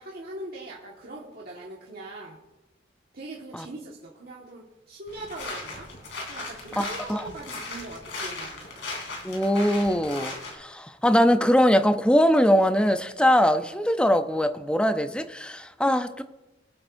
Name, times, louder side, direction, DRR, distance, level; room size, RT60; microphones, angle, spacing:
voice 1, 0.0-2.4 3.1-5.9 6.3-8.7, right 2 dB, 55° right, -4 dB, 1.6 m, -41 dB
sound 1, 5.1-10.5, left 2 dB, 70° left, 2.9 m, -37 dB
voice 2, 9.2-16.2, equal, 5° left, 9 dB, 0.5 m, -22 dB
23.0 x 7.8 x 2.6 m, 1.0 s
head